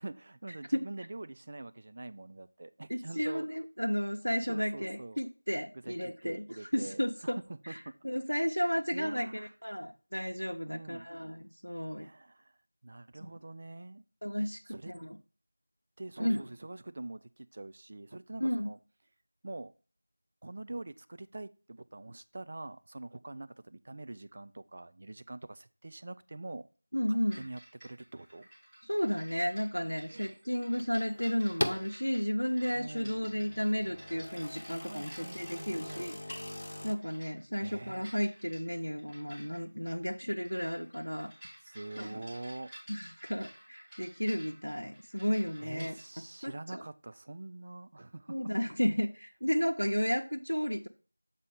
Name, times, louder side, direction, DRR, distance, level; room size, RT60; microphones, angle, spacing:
voice 1, 0.0-3.5 4.5-5.2 5.8-5.9 6.2-8.0 8.9-9.5 10.6-11.1 12.0-12.5 12.8-14.0 14.4-14.9 16.0-18.8 19.4-19.7 20.4-26.7 27.1-28.5 30.1-30.4 32.7-33.2 34.4-34.5 34.8-36.1 37.6-38.1 41.6-42.7 45.6-48.4, right 2 dB, 30° right, 0.3 m, -45 dB
voice 2, 2.9-7.4 7.7-7.8 8.0-12.1 13.2-13.3 14.2-14.6 14.9-15.2 16.2-16.5 18.4-18.7 26.9-27.5 28.8-36.2 36.8-41.3 42.0-42.2 42.9-45.9 46.4-46.8 48.3-50.9, equal, 85° left, 0.7 m, -33 dB
sound 1, 27.3-46.1, equal, 5° right, 2.0 m, -53 dB
sound 2, 30.8-31.9 32.5-37.0, left 1 dB, 40° left, 0.5 m, -40 dB
7.6 x 4.2 x 4.8 m
figure-of-eight pair, 175°, 0 cm